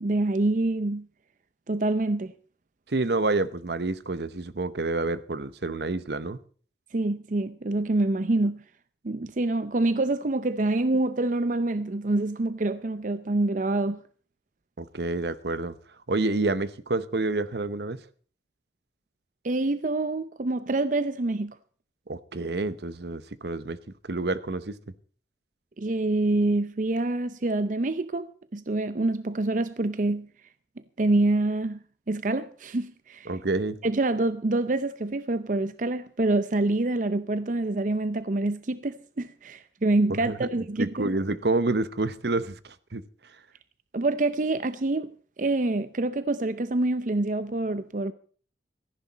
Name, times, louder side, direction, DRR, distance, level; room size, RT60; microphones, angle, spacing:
voice 1, 0.0-1.1 1.7-2.3 6.9-8.6 9.0-14.0 19.4-21.6 25.8-28.3 28.5-30.3 31.0-31.8 32.1-33.3 33.8-41.2 43.9-45.1 45.4-48.1, right 2 dB, 45° right, 0.6 m, -26 dB
voice 2, 2.9-6.4 14.8-15.7 16.1-18.0 22.1-23.8 24.1-24.8 33.3-33.8 40.1-40.4 40.8-43.0, right 2 dB, 70° right, 0.9 m, -28 dB
17.0 x 14.5 x 4.1 m
head